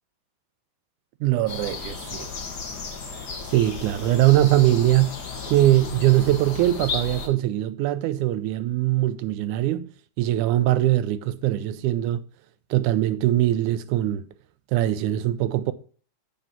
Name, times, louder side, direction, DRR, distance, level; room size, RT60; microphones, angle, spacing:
voice 1, 1.2-2.3 3.5-5.2 5.5-9.9 10.2-12.2 12.7-14.3 14.7-15.7, right 14 dB, 80° right, 2.1 m, -21 dB
sound 1, 1.5-7.3, left 5 dB, 50° left, 1.3 m, -34 dB
8.1 x 5.6 x 5.8 m
omnidirectional pair, 3.5 m